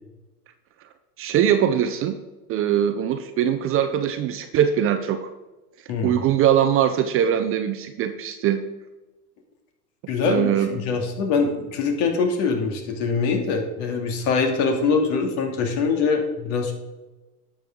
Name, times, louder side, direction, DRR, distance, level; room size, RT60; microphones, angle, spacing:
voice 1, 1.2-2.2 2.5-5.2 6.0-8.6 10.2-10.7, right 9 dB, 30° right, 9 dB, 0.6 m, -21 dB
voice 2, 5.9-6.2 10.1-16.7, left 4 dB, 55° left, 3 dB, 2.6 m, -23 dB
12.0 x 7.8 x 3.8 m, 1.1 s
supercardioid pair, 125°, 47 cm